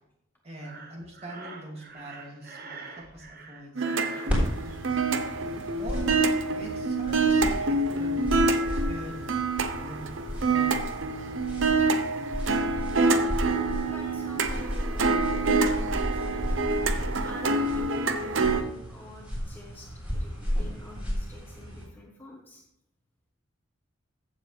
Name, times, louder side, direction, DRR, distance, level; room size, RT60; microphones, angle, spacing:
voice 1, 0.4-5.0 5.8-6.3 6.5-8.4 8.9-9.3 9.6-10.8, equal, 30° right, -1 dB, 2.5 m, -43 dB
Breathing, 0.6-4.3, right 4 dB, 45° right, 1.2 m, -44 dB
sound 1, 3.8-18.6, right 3 dB, 70° right, 0.8 m, -26 dB
voice 2, 4.0-4.4 13.7-16.6 17.2-22.6, left 1 dB, 10° left, -1 dB, 1.2 m, -47 dB
sound 2, 4.3-21.8, equal, 5° right, 3.6 m, -34 dB
15.0 x 7.3 x 3.3 m, 0.81 s
head